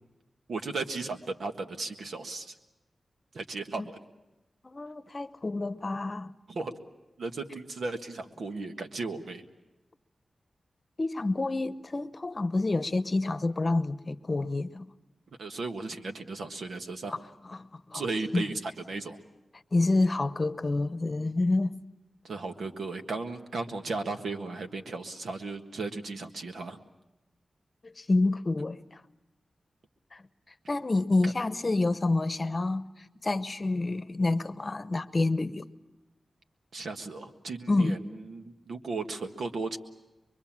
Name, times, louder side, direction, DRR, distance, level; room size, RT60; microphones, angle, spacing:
voice 1, 0.5-2.5 3.3-4.0 6.5-6.7 7.2-9.4 15.4-17.1 17.9-19.2 22.2-26.8 31.2-31.3 36.7-39.8, right 3 dB, 85° right, 1.6 m, -35 dB
voice 2, 4.6-6.3 11.0-14.9 17.5-18.0 18.3-18.4 19.7-21.8 27.8-29.0 30.1-30.2 30.7-35.7 37.7-38.0, left 2 dB, 40° left, 0.9 m, -28 dB
24.0 x 23.5 x 7.4 m
wide cardioid pair, 75°, 0 cm